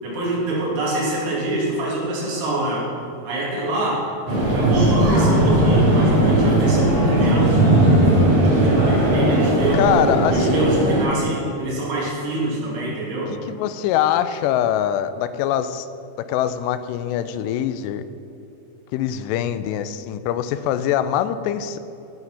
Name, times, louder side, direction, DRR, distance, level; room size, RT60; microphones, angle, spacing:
voice 1, 0.0-2.9 3.3-4.1 4.5-7.7 8.6-9.9 10.3-13.3, right 1 dB, 75° right, -5 dB, 4.6 m, -25 dB
sound 1, 4.3-11.0, right 1 dB, 40° right, 3.7 m, -17 dB
voice 2, 9.7-10.7 13.5-15.9 16.2-18.0 18.9-21.8, left 10 dB, 90° left, 13 dB, 2.7 m, -23 dB
14.5 x 6.0 x 5.7 m, 2.9 s
omnidirectional pair, 4.8 m